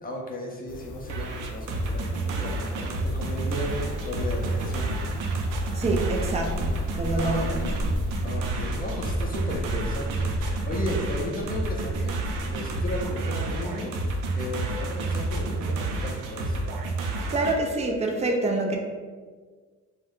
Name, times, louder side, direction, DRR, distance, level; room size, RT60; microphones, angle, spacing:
voice 1, 0.0-5.1 7.1-7.9 8.2-16.6, left 1 dB, 30° left, -1 dB, 0.5 m, -35 dB
sound 1, 0.7-8.3, left 1 dB, 85° left, 0.5 m, -38 dB
sound 2, 1.1-17.5, right 2 dB, 85° right, 0.5 m, -29 dB
voice 2, 5.7-7.6 17.3-18.8, right 2 dB, 20° right, 1 dB, 0.4 m, -26 dB
sound 3, 6.3-13.1, left 1 dB, 70° right, 0.9 m, -35 dB
2.3 x 2.2 x 3.5 m, 1.5 s
cardioid pair, 90°, 30 cm